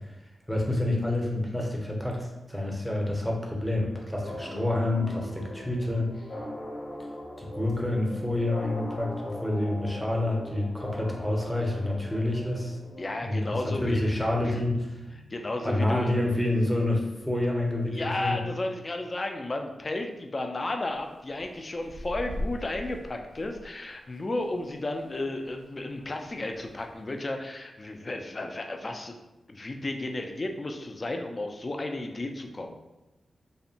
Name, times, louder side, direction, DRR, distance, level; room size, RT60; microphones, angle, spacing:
voice 1, 0.5-6.2 7.4-9.2 9.4-12.8 13.2-15.0 15.6-18.4, left 1 dB, ahead, -1 dB, 0.6 m, -28 dB
sound 1, 4.2-13.6, left 1 dB, 70° left, 0.7 m, -40 dB
voice 2, 13.0-14.5 15.3-16.1 17.9-29.1 29.5-32.8, left 2 dB, 40° left, 4 dB, 0.3 m, -33 dB
sound 2, 13.7-17.4, left 3 dB, 90° left, 1.0 m, -48 dB
sound 3, 20.9-25.7 26.0-27.2, equal, 80° right, 0.4 m, -41 dB
2.7 x 2.1 x 2.7 m, 1.0 s
cardioid pair, 65°, 0 cm